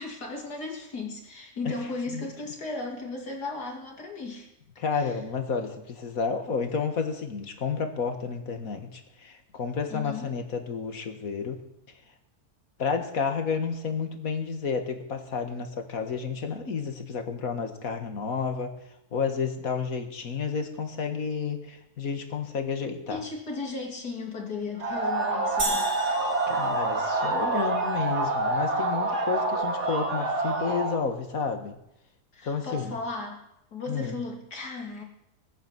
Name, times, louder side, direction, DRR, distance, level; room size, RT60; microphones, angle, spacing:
voice 1, 0.0-4.5 4.9-5.2 9.9-10.3 23.1-25.9 32.3-33.4 33.7-35.0, left 3 dB, 85° left, 1 dB, 3.6 m, -36 dB
voice 2, 4.8-11.6 12.8-18.7 19.1-23.2 26.5-31.8 32.4-32.9 33.9-34.2, left 5 dB, 60° left, 6 dB, 2.0 m, -31 dB
sound 1, 24.8-31.0, right 2 dB, 90° right, 2.8 m, -27 dB
sound 2, 25.6-28.0, right 1 dB, 70° right, 5.8 m, -34 dB
19.0 x 9.5 x 7.5 m, 0.83 s
omnidirectional pair, 1.7 m